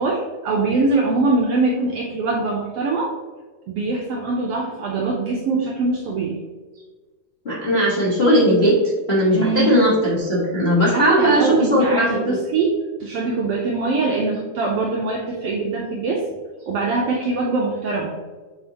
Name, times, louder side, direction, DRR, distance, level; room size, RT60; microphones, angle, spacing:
voice 1, 0.0-3.1 3.7-6.4 9.3-9.7 10.8-16.2 16.7-18.2, right 3 dB, 80° right, -1 dB, 1.4 m, -23 dB
voice 2, 7.4-8.8 9.1-12.4, equal, 55° left, -8 dB, 0.6 m, -18 dB
7.7 x 4.2 x 2.9 m, 1.4 s
omnidirectional pair, 3.4 m